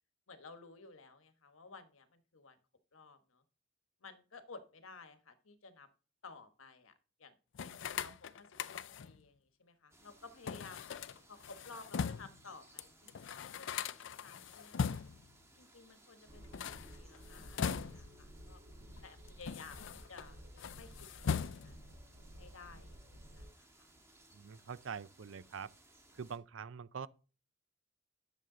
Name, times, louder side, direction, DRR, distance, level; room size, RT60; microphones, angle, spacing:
voice 1, 0.3-2.6 2.9-3.4 4.0-5.9 6.2-6.9 7.2-7.4 7.6-11.0 11.3-15.0 15.6-18.6 19.0-20.4 20.7-21.8 22.4-23.1 23.3-23.9, left 4 dB, 80° left, 1.3 m, -55 dB
sound 1, 7.5-9.2 10.5-12.4 12.8-12.9 13.1-15.3 16.4-18.2 19.0-20.3 20.6-21.9, left 6 dB, 60° left, 0.4 m, -40 dB
sound 2, 9.9-26.4, right 1 dB, 15° right, 1.5 m, -64 dB
sound 3, 16.3-23.5, equal, 85° right, 4.3 m, -54 dB
voice 2, 24.3-25.7 26.1-27.1, right 6 dB, 65° right, 0.5 m, -45 dB
10.5 x 7.1 x 3.8 m
head